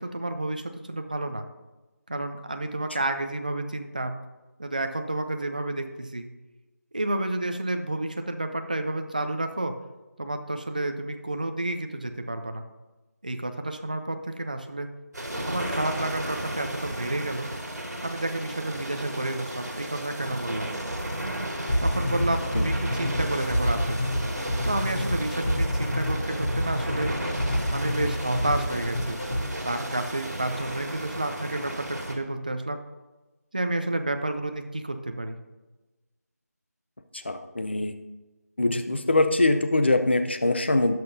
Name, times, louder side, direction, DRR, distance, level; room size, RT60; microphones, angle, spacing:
voice 1, 0.0-1.5 2.1-4.2 4.6-6.3 6.9-9.7 10.2-12.6 13.2-14.9 15.5-17.5 18.0-20.7 21.8-24.0 24.7-27.1 27.7-29.2 29.6-32.8 33.5-35.4, right 2 dB, 30° right, 7 dB, 0.5 m, -30 dB
sound 1, 15.1-32.1, right 1 dB, 80° right, 2.4 m, -34 dB
sound 2, 21.7-29.4, left 1 dB, 20° left, 2.9 m, -28 dB
voice 2, 37.1-38.0 38.6-41.0, left 2 dB, 40° left, 8 dB, 0.6 m, -23 dB
17.0 x 5.9 x 2.7 m, 1.1 s
figure-of-eight pair, 175°, 9 cm